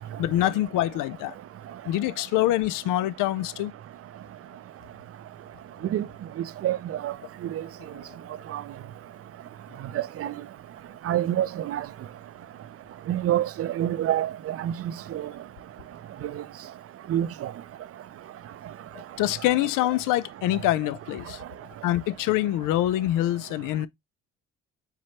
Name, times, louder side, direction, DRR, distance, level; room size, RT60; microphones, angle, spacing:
voice 1, 0.2-1.3 1.9-3.7 19.2-21.4 21.8-23.9, left 14 dB, 65° left, 0.5 m, -25 dB
voice 2, 6.6-7.1 7.5-7.6 8.5-8.6 10.0-10.3 11.1-11.8 13.1-15.2 17.1-17.5, right 12 dB, 40° right, 0.5 m, -27 dB
4.7 x 3.2 x 2.8 m
hypercardioid pair, 55°, 35 cm